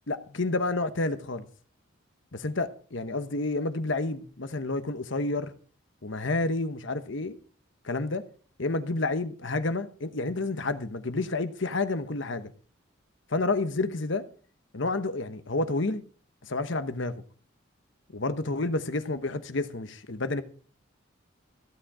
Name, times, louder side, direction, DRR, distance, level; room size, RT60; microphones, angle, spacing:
voice 1, 0.1-1.5 2.3-5.5 6.0-7.4 7.8-8.2 8.6-12.5 13.3-14.3 14.7-16.0 16.4-17.2 18.1-20.4, left 2 dB, 65° left, 1.1 m, -29 dB
15.5 x 9.0 x 4.8 m
head